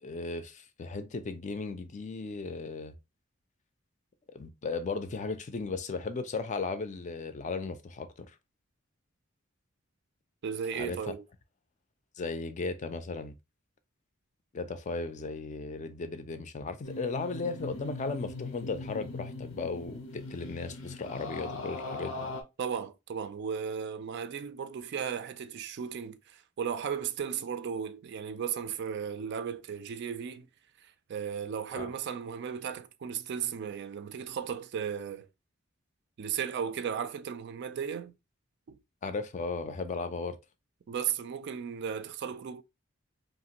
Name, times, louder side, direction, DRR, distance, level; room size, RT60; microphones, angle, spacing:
voice 1, 0.0-3.0 4.3-8.3 10.8-11.0 12.2-13.4 14.5-22.3 31.7-31.9 39.0-40.4, left 4 dB, 35° left, 0.4 m, -36 dB
voice 2, 10.4-11.2 22.6-30.5 30.8-35.3 36.2-38.1 38.7-38.8 40.9-42.6, right 7 dB, 55° right, 0.3 m, -35 dB
sound 1, 16.8-22.4, left 2 dB, 90° left, 0.6 m, -40 dB
2.8 x 2.5 x 2.9 m
head